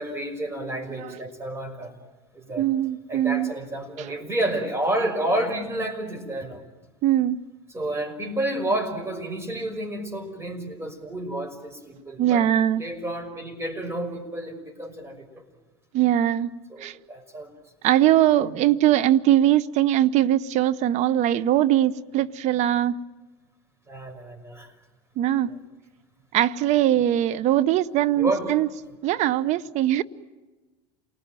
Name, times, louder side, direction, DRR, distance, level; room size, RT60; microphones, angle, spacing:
voice 1, 0.0-1.9 2.3-2.7 3.1-6.6 7.7-12.5 12.8-15.4 16.7-17.5 18.4-18.6 23.9-24.7 25.5-25.6 28.2-28.5, right 1 dB, 20° right, 5.8 m, -30 dB
voice 2, 2.6-3.5 4.0-4.1 7.0-7.4 12.2-12.8 15.9-16.5 16.8-17.0 17.8-23.0 25.2-25.5 26.3-28.7 29.0-30.0, right 12 dB, 55° right, 0.8 m, -21 dB
28.5 x 19.5 x 9.0 m
supercardioid pair, 95°, 14 cm